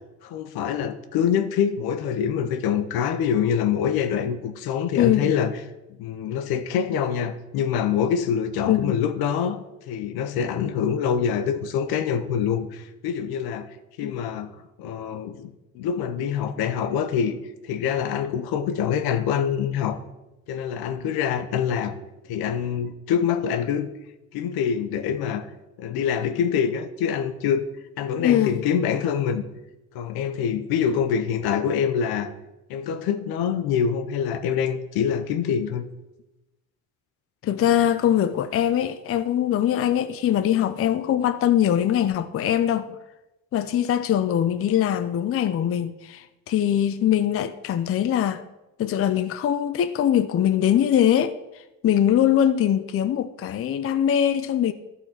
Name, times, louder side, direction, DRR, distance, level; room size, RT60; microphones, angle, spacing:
voice 1, 0.2-5.5 6.0-13.7 14.0-17.4 17.6-20.0 20.5-21.9 22.2-23.9 24.3-25.5 25.8-27.7 28.0-29.4 29.9-32.3 32.7-35.8, left 8 dB, 70° left, 0.9 m, -25 dB
voice 2, 5.0-5.4 8.7-9.0 14.0-14.1 28.2-28.6 37.4-42.9 43.5-48.4 48.8-51.4 51.8-54.7, left 10 dB, 35° left, 0.5 m, -22 dB
12.0 x 4.2 x 5.8 m
supercardioid pair, 80°, 38 cm